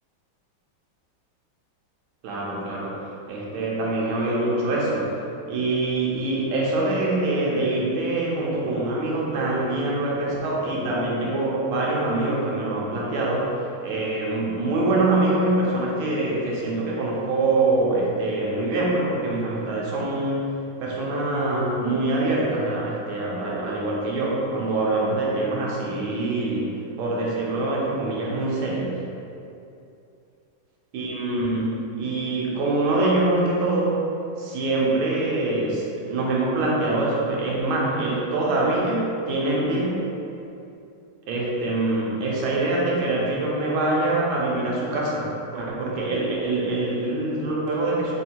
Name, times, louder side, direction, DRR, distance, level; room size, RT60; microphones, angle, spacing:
voice 1, 2.2-5.2 5.5-13.5 13.8-20.5 20.8-26.7 27.0-29.0 30.9-34.0 34.4-40.0 41.3-48.1, right 2 dB, 85° right, -4 dB, 1.7 m, -24 dB
4.1 x 2.7 x 4.3 m, 2.6 s
omnidirectional pair, 2.2 m